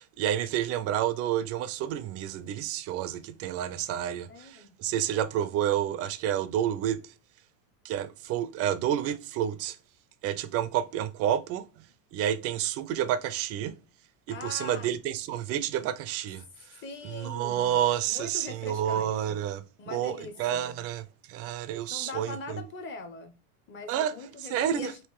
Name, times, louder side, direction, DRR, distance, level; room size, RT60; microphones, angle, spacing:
voice 1, 0.0-7.1 7.8-9.8 10.2-11.7 12.1-13.8 14.3-22.6 23.9-24.1 24.5-24.9, right 11 dB, 35° right, 0.4 m, -30 dB
voice 2, 4.3-4.7 9.0-9.2 14.3-15.0 16.8-19.5 19.8-20.8 21.9-23.3 23.7-25.0, left 4 dB, 25° left, 0.9 m, -42 dB
3.6 x 2.7 x 4.7 m
supercardioid pair, 120°, 45 cm